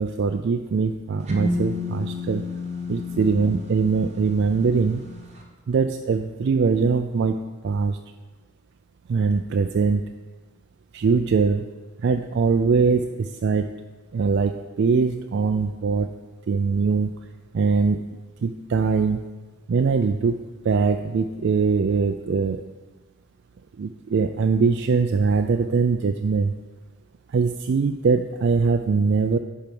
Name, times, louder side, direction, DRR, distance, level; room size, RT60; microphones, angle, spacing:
voice 1, 0.0-2.4 2.9-5.0 5.7-7.4 7.6-8.0 9.1-10.0 10.9-11.6 12.0-13.7 14.1-16.1 16.5-17.1 17.5-18.0 18.4-19.2 19.7-20.4 20.6-22.6 23.8-26.5 27.3-29.4, right 5 dB, 55° right, 6 dB, 0.3 m, -22 dB
sound 1, 1.3-5.1, left 2 dB, 30° right, 1.1 m, -31 dB
10.5 x 4.6 x 5.3 m, 1.3 s
head